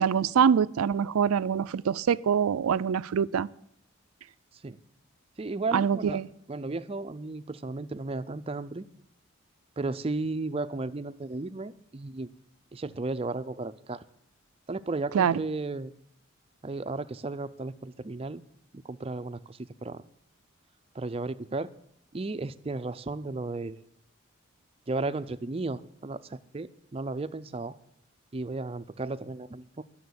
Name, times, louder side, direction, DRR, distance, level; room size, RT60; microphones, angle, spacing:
voice 1, 0.0-3.5 5.7-6.3 15.1-15.4, right 7 dB, 90° right, 18 dB, 0.4 m, -24 dB
voice 2, 5.4-6.2 6.5-8.9 9.8-12.3 12.7-14.0 14.7-15.9 16.6-18.4 18.7-20.0 20.9-21.7 22.1-23.8 24.9-27.8 28.3-29.8, right 3 dB, 25° right, 12 dB, 0.4 m, -34 dB
10.5 x 7.1 x 9.4 m, 0.70 s
head